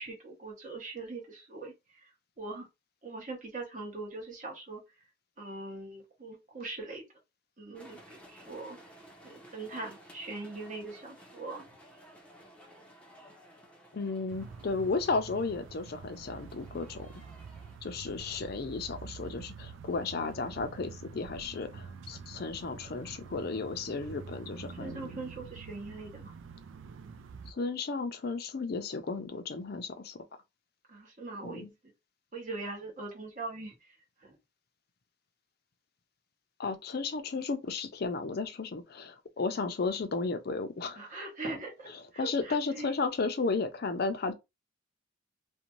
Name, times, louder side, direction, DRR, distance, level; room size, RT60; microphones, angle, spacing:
voice 1, 0.0-2.1 2.4-2.7 3.0-4.8 5.4-7.0 7.6-8.8 9.2-11.6 24.8-26.3 30.9-31.7 32.3-33.7 34.2-34.4 41.0-42.9, right 3 dB, 40° right, 1.0 m, -41 dB
sound 1, 7.7-17.8, equal, 5° left, 0.6 m, -55 dB
voice 2, 13.9-17.1 17.8-25.1 27.5-30.2 31.4-31.7 36.6-41.1 41.9-44.3, left 4 dB, 50° left, 0.5 m, -34 dB
sound 2, 14.3-27.5, right 5 dB, 70° right, 0.3 m, -47 dB
2.6 x 2.2 x 2.9 m
head